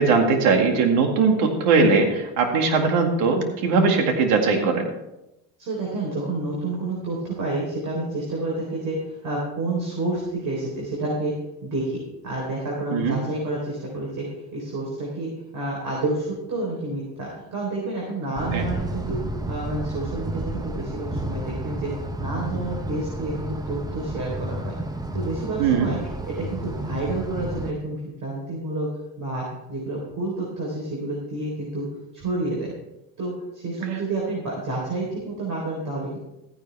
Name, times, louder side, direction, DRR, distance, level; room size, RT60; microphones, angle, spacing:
voice 1, 0.0-4.9 12.9-13.2 18.5-18.7 25.6-25.9, right 4 dB, 75° right, 4 dB, 2.2 m, -20 dB
voice 2, 5.6-11.3 11.6-14.3 14.5-19.2 19.5-21.9 22.2-24.7 25.1-26.0 26.3-28.9 29.2-31.9 32.1-32.7 33.2-36.2, right 2 dB, 45° right, -3 dB, 3.9 m, -29 dB
sound 1, 18.4-27.7, right 1 dB, 10° right, 0.8 m, -31 dB
14.0 x 9.8 x 3.4 m, 0.92 s
supercardioid pair, 110°, 43 cm